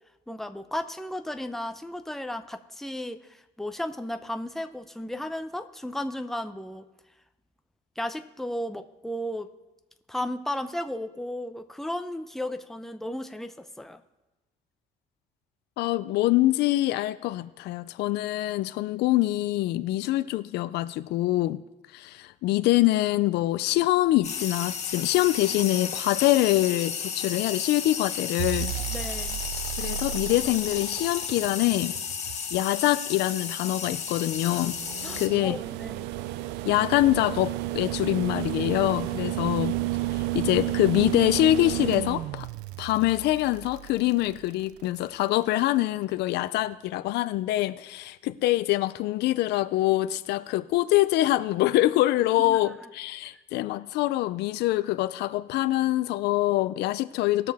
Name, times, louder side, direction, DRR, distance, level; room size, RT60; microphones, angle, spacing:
voice 1, 0.3-6.9 8.0-9.5 10.1-14.0 28.9-29.4 35.0-36.1 52.4-52.7, left 1 dB, ahead, 0.6 m, -34 dB
voice 2, 15.8-21.6 21.9-28.7 29.8-32.0 32.5-34.8 35.2-35.6 36.7-39.8 40.1-42.5 42.8-57.5, left 16 dB, 80° left, 0.5 m, -25 dB
sound 1, 24.2-35.3, left 6 dB, 40° left, 1.4 m, -33 dB
sound 2, 28.4-32.6 33.8-45.0 46.6-46.7, right 16 dB, 90° right, 0.4 m, -32 dB
20.0 x 6.7 x 3.5 m
cardioid pair, 110°, 17 cm